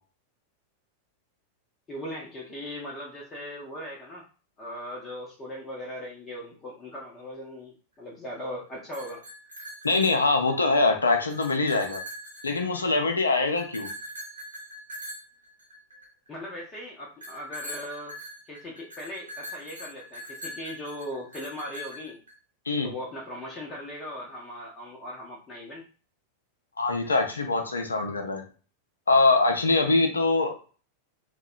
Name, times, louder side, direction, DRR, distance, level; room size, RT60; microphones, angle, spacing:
voice 1, 1.9-4.2 4.6-9.2 16.3-18.2 18.5-22.2 22.8-25.8, equal, 25° left, -4 dB, 0.6 m, -39 dB
sound 1, 8.8-10.7 11.1-13.1 13.6-16.3 17.2-22.3, equal, 75° right, 0.8 m, -42 dB
voice 2, 9.8-12.0 12.4-13.9 22.7-22.9 26.8-28.4 29.1-30.6, left 3 dB, 75° left, 4 dB, 0.4 m, -23 dB
2.7 x 2.1 x 2.4 m, 0.38 s
figure-of-eight pair, 90°, 0 cm